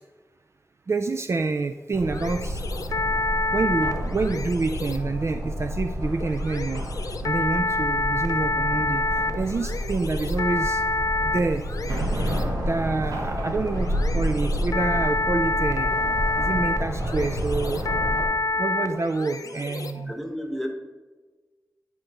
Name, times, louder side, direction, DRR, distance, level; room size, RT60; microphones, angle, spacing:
voice 1, 0.9-2.6 3.5-6.9 7.2-9.0 9.4-10.8 11.2-11.6 12.6-17.8 18.6-20.1, right 3 dB, 50° right, 7 dB, 0.3 m, -27 dB
sound 1, 1.9-18.3, equal, 85° right, 1.0 m, -29 dB
sound 2, 2.1-20.1, left 2 dB, 75° left, 0.4 m, -28 dB
voice 2, 20.1-20.7, equal, ahead, 2 dB, 1.2 m, -31 dB
9.7 x 5.2 x 2.9 m, 1.3 s
cardioid pair, 50°, 6 cm